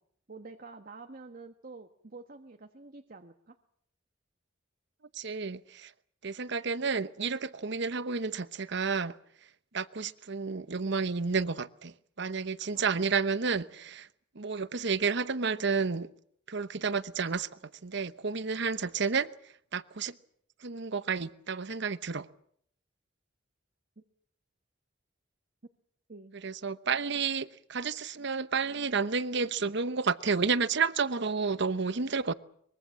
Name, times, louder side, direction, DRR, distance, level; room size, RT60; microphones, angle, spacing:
voice 1, 0.3-3.6 12.7-13.0 24.0-24.1 26.1-26.4, right 3 dB, 45° right, 1.2 m, -48 dB
voice 2, 5.1-5.9 6.2-9.2 9.7-14.1 14.3-16.1 16.5-17.5 17.8-19.3 19.7-20.2 20.6-22.3 26.4-32.3, right 5 dB, 60° right, 0.9 m, -31 dB
24.0 x 22.5 x 7.5 m
head